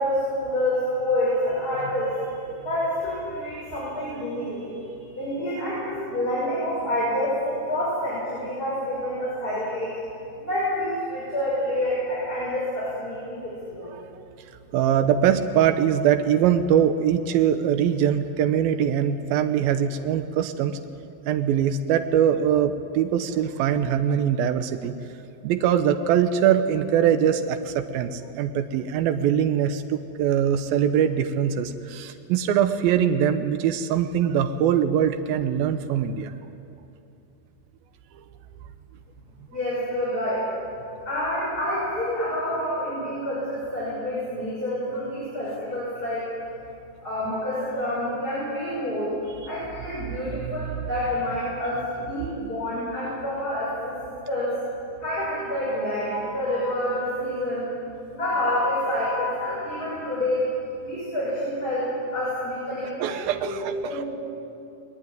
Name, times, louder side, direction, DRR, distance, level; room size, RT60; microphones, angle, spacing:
voice 1, 0.0-2.2 2.6-10.0 10.4-13.9 39.5-40.5 41.1-46.3 47.0-49.2 49.5-54.5 55.0-57.7 58.1-60.5 60.8-63.6 63.9-64.1, left 1 dB, 25° left, -7 dB, 7.1 m, -28 dB
voice 2, 14.7-20.8 21.3-24.9 25.4-36.3 63.0-64.0, right 9 dB, 85° right, 9 dB, 2.8 m, -22 dB
21.5 x 21.0 x 9.5 m, 2.7 s
omnidirectional pair, 4.1 m